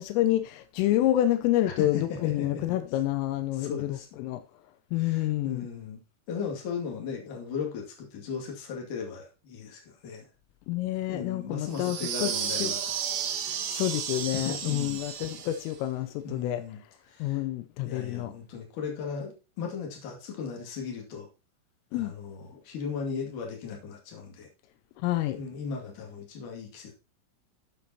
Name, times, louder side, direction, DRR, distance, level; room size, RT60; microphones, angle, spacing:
voice 1, 0.0-4.4 4.9-5.7 10.7-12.7 13.7-16.6 17.2-18.3 21.9-22.1 25.0-25.4, left 14 dB, 85° left, 3.3 m, -28 dB
voice 2, 1.7-2.6 3.5-4.1 4.9-6.0 6.3-10.2 11.1-12.8 13.3-13.6 14.3-15.0 16.2-16.8 17.1-17.4 17.8-21.3 21.9-24.5 25.3-26.9, left 5 dB, 50° left, 3.2 m, -37 dB
sound 1, 11.7-15.8, right 8 dB, 75° right, 2.3 m, -33 dB
11.5 x 6.9 x 2.8 m
omnidirectional pair, 5.8 m